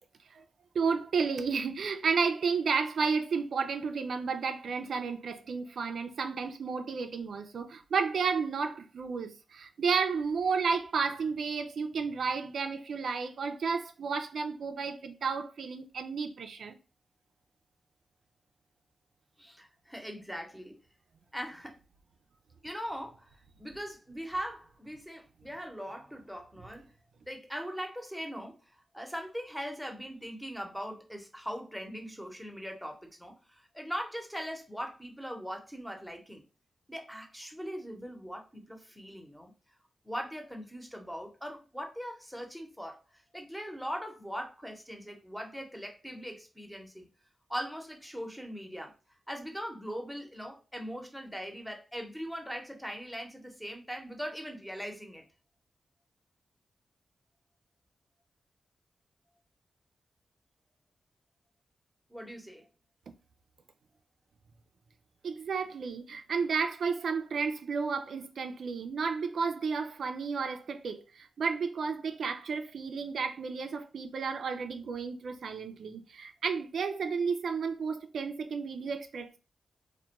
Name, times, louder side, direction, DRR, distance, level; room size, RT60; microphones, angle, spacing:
voice 1, 0.7-16.8 65.2-79.4, right 5 dB, 75° right, 0.3 m, -32 dB
voice 2, 19.4-20.8 21.3-21.8 22.6-23.3 23.6-26.9 27.2-28.5 28.9-36.4 36.9-39.5 40.0-47.1 47.5-48.9 49.3-55.2 62.1-62.7, equal, ahead, 0.8 m, -40 dB
2.2 x 2.1 x 2.9 m
supercardioid pair, 45°, 0 cm